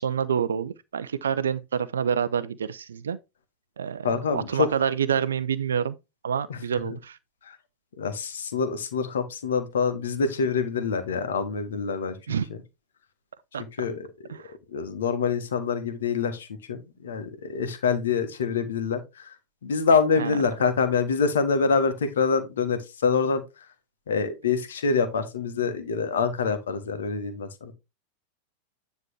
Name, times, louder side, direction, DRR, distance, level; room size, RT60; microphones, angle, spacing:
voice 1, 0.0-3.2 3.8-5.9 6.2-7.2 12.3-12.5 13.5-13.6 14.3-14.5 20.2-20.4, right 7 dB, 65° right, 0.5 m, -27 dB
voice 2, 4.0-4.7 6.5-6.6 7.5-7.6 8.0-12.2 13.8-14.1 14.7-19.0 19.6-23.4 24.1-27.7, left 5 dB, 65° left, 1.5 m, -25 dB
9.7 x 3.5 x 4.7 m
figure-of-eight pair, 90°, 0 cm